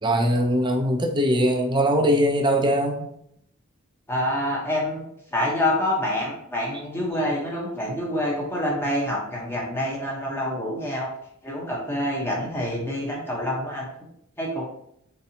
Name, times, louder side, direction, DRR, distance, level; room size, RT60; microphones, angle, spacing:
voice 1, 0.0-3.0, equal, 20° right, 3 dB, 0.5 m, -21 dB
voice 2, 4.1-11.1 11.4-13.9 14.4-14.7, left 1 dB, 10° left, -3 dB, 0.8 m, -27 dB
4.2 x 4.0 x 2.7 m, 0.73 s
head